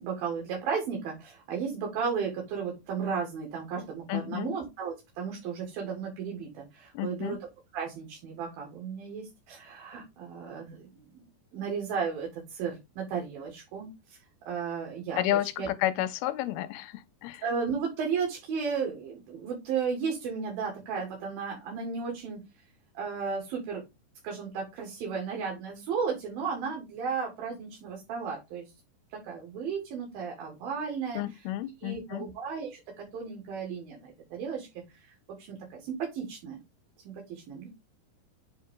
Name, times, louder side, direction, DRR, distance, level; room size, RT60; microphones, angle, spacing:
voice 1, 0.0-7.4 7.7-11.2 11.5-14.2 14.4-15.7 17.4-22.4 23.0-23.8 24.2-28.7 29.1-31.2 31.8-35.1 35.4-36.6 37.1-37.7, right 6 dB, 70° right, 3.5 m, -34 dB
voice 2, 4.1-4.5 6.9-7.4 15.2-17.4 31.1-32.3, left 14 dB, 85° left, 2.5 m, -31 dB
8.1 x 4.0 x 3.6 m
omnidirectional pair, 4.5 m